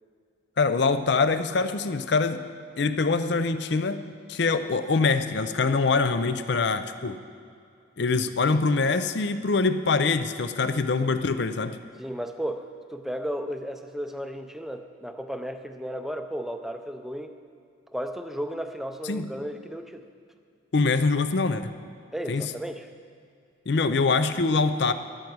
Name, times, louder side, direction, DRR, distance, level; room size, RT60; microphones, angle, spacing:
voice 1, 0.6-2.4 2.8-7.2 8.0-11.8 19.1-19.3 20.7-21.7 22.3-22.4 23.7-24.9, left 4 dB, 60° left, 10 dB, 0.5 m, -24 dB
voice 2, 12.0-17.3 17.9-20.1 22.1-22.9, equal, ahead, 6 dB, 0.5 m, -34 dB
13.5 x 11.5 x 4.7 m, 2.4 s
head